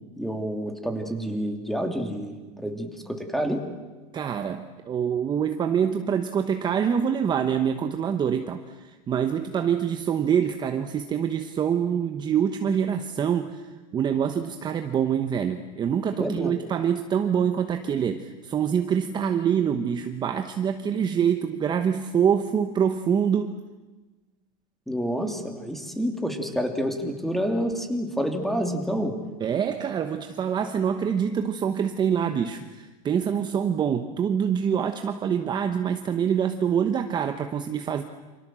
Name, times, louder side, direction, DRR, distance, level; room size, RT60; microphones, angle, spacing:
voice 1, 0.2-3.6 16.2-16.5 24.9-29.1, equal, ahead, 5 dB, 3.0 m, -28 dB
voice 2, 4.1-13.7 13.9-23.5 29.4-38.0, right 8 dB, 25° right, 7 dB, 1.1 m, -25 dB
28.5 x 26.0 x 7.7 m, 1.2 s
supercardioid pair, 150°, 19 cm